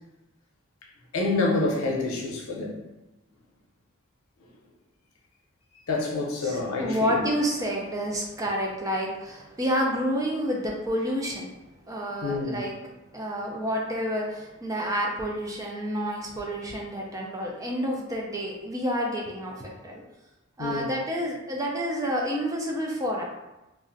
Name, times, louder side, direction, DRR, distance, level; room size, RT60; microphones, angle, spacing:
voice 1, 1.1-2.8 5.9-7.2 12.2-12.6 20.6-20.9, left 3 dB, 90° left, -1 dB, 0.6 m, -27 dB
voice 2, 6.4-11.5 11.8-12.8 13.1-20.0 20.6-23.2, equal, 15° right, -1 dB, 0.4 m, -29 dB
2.4 x 2.1 x 3.8 m, 0.99 s
head